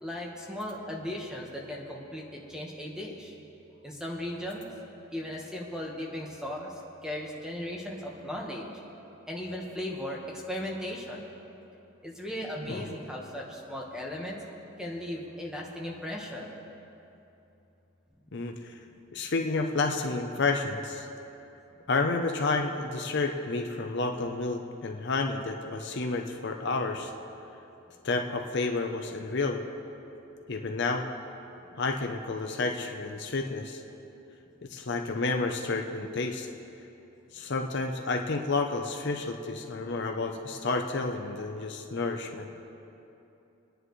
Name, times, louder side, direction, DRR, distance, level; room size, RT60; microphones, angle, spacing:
voice 1, 0.0-3.3 3.8-4.7 5.1-6.7 7.0-8.7 9.3-11.3 12.0-14.4 14.8-16.6, left 1 dB, 5° right, -2 dB, 1.4 m, -37 dB
voice 2, 18.3-18.8 19.1-21.1 21.9-27.1 28.0-29.6 30.5-31.1 31.8-33.8 34.7-36.5 37.3-42.5, left 3 dB, 55° left, 3 dB, 0.7 m, -30 dB
26.0 x 10.0 x 3.2 m, 2.9 s
head